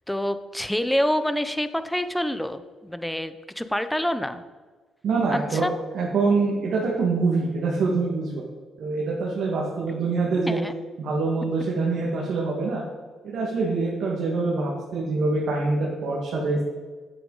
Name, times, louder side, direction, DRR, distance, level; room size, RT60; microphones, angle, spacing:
voice 1, 0.1-4.4 5.3-5.7 10.4-10.7, equal, 5° left, 11 dB, 0.5 m, -27 dB
voice 2, 5.0-5.6 5.9-8.4 8.8-10.6 11.0-12.8 13.2-16.6, right 3 dB, 70° right, -3 dB, 1.7 m, -25 dB
8.8 x 7.8 x 4.0 m, 1.4 s
cardioid pair, 90°, 0 cm